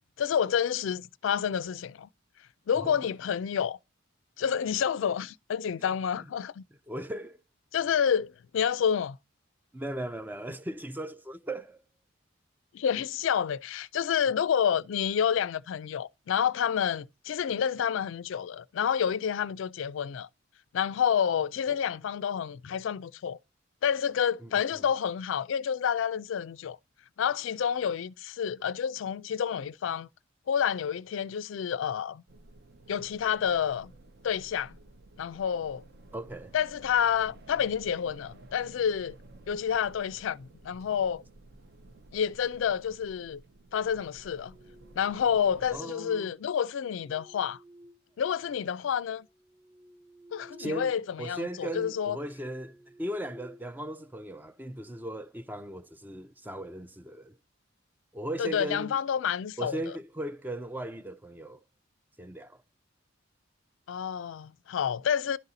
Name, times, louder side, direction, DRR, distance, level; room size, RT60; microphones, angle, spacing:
voice 1, 0.2-2.1 2.7-3.8 4.4-6.6 7.7-9.2 12.7-20.3 20.7-23.4 23.8-26.8 27.2-30.1 30.5-32.2 32.9-33.9 34.2-34.8 35.2-35.8 36.5-39.2 39.5-41.2 42.1-43.4 43.7-44.5 45.0-47.6 48.2-49.3 50.3-52.2 58.4-59.8 63.9-65.4, left 8 dB, 70° left, 0.3 m, -29 dB
voice 2, 5.8-6.3 6.9-7.4 9.7-11.8 21.7-21.8 24.4-24.9 36.1-36.5 45.7-46.4 50.6-57.3 58.1-59.0 59.6-61.6 62.2-62.6, right 1 dB, 10° right, 0.3 m, -38 dB
sound 1, 32.3-45.8, right 2 dB, 50° right, 0.6 m, -53 dB
sound 2, 44.0-45.5 46.5-48.6 49.1-50.9 51.2-51.4 51.9-54.3, equal, 30° right, 1.0 m, -55 dB
11.0 x 4.0 x 3.9 m
head